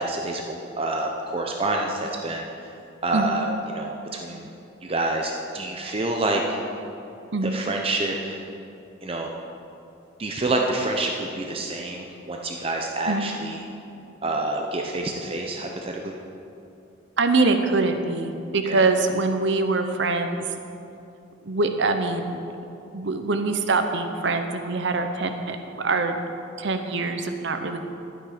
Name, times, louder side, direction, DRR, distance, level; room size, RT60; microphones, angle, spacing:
voice 1, 0.0-2.5 3.0-4.4 4.8-6.6 7.4-8.5 9.0-9.3 10.2-13.6 14.2-16.1 18.6-18.9, right 2 dB, 30° right, 1 dB, 0.7 m, -27 dB
voice 2, 17.2-20.5 21.4-22.4 22.9-26.2 26.6-27.8, right 3 dB, 65° right, 7 dB, 0.8 m, -24 dB
12.0 x 8.6 x 5.0 m, 2.7 s
head